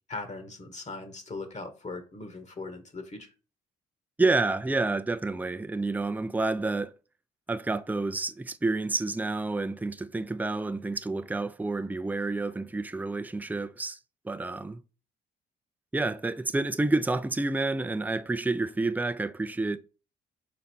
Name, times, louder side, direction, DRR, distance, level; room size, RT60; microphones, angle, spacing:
voice 1, 0.1-3.3, left 3 dB, 40° left, 1.5 m, -39 dB
voice 2, 4.2-6.9 7.5-14.0 14.2-14.8 15.9-19.8, right 3 dB, 10° right, 0.5 m, -29 dB
5.2 x 4.1 x 4.4 m
supercardioid pair, 70°, 19 cm